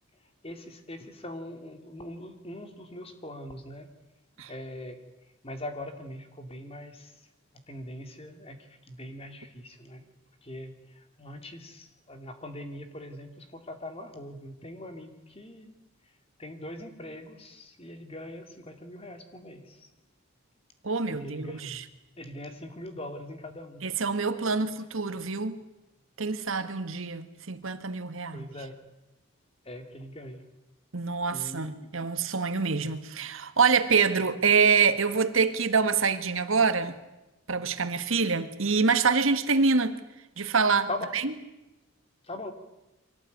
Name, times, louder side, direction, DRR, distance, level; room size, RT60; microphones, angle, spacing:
voice 1, 0.4-3.9 4.5-5.0 5.4-7.1 7.7-10.0 10.4-15.7 16.4-19.9 21.1-21.8 22.2-23.8 28.3-28.8 29.6-30.4 31.3-31.9 40.9-41.2 42.2-42.5, left 1 dB, 25° left, 2.6 m, -41 dB
voice 2, 20.8-21.8 23.8-25.6 26.2-28.5 30.9-36.9 37.5-40.0 40.4-41.2, right 5 dB, 70° right, 1.6 m, -26 dB
24.0 x 18.0 x 9.4 m
head